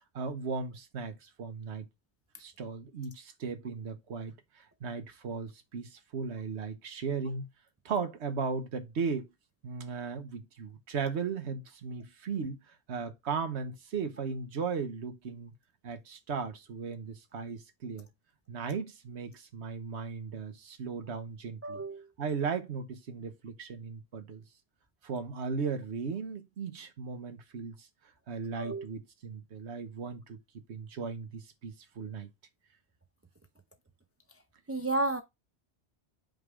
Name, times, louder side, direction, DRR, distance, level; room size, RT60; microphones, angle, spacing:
voice 1, 0.1-1.9 2.4-7.5 7.8-9.3 9.6-15.5 15.8-18.1 18.5-21.8 22.2-24.4 25.0-27.9 28.3-30.4 30.7-32.3, right 5 dB, 70° right, 1.3 m, -37 dB
voice 2, 21.6-22.0 28.6-28.8 34.7-35.2, right 2 dB, 20° right, 0.4 m, -31 dB
5.3 x 3.7 x 4.8 m
omnidirectional pair, 1.2 m